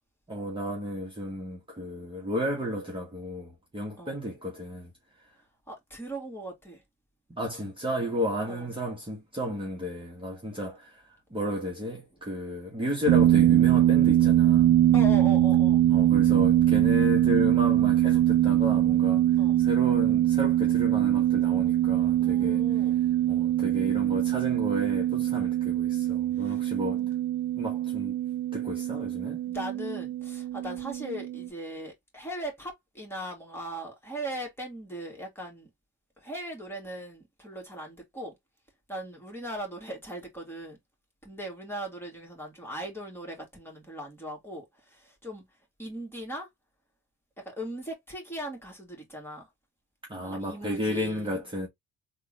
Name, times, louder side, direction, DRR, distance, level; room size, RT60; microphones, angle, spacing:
voice 1, 0.3-4.9 7.3-11.0 11.3-14.7 15.9-22.6 23.3-27.0 27.6-28.2 28.5-29.4 50.1-51.7, left 1 dB, 15° right, 1.4 m, -33 dB
voice 2, 5.7-6.8 8.5-8.7 14.9-15.8 19.4-19.6 22.2-23.0 26.4-26.6 26.9-27.1 29.5-35.7 36.2-38.3 38.9-40.8 41.2-45.4 45.8-46.5 47.5-49.5 50.2-51.4, right 1 dB, 10° left, 2.0 m, -39 dB
sound 1, 13.1-31.5, right 13 dB, 70° right, 0.6 m, -23 dB
3.6 x 2.5 x 3.1 m
cardioid pair, 90°, 30 cm